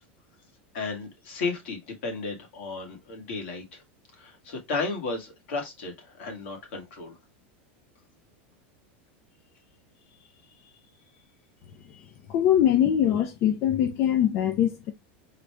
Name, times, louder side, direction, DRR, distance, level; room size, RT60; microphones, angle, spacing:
voice 1, 0.7-3.8 4.2-7.1 11.9-12.0, left 3 dB, 75° left, 2.1 m, -34 dB
voice 2, 12.3-14.9, left 10 dB, 45° left, 0.6 m, -22 dB
4.0 x 3.3 x 3.3 m
supercardioid pair, 140°, 6 cm